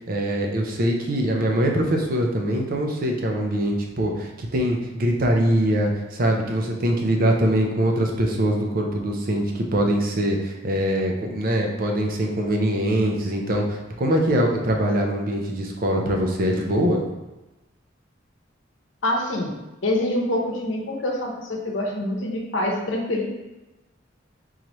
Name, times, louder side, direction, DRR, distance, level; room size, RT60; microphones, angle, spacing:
voice 1, 0.1-17.0, right 1 dB, 50° right, 2 dB, 0.6 m, -23 dB
voice 2, 19.0-19.5 19.8-23.3, left 1 dB, 85° left, -1 dB, 0.8 m, -25 dB
3.9 x 3.0 x 3.0 m, 1.0 s
head